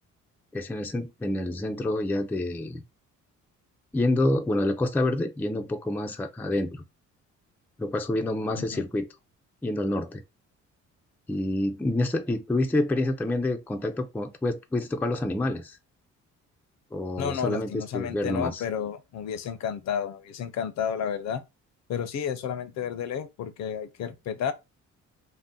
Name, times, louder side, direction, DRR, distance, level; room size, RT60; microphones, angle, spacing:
voice 1, 0.5-2.8 3.9-6.8 7.8-9.1 9.6-10.2 11.3-15.8 16.9-18.6, left 1 dB, 5° left, 0.4 m, -27 dB
voice 2, 17.2-21.4 21.9-24.5, left 8 dB, 60° left, 0.6 m, -31 dB
2.6 x 2.1 x 3.6 m
cardioid pair, 90°, 30 cm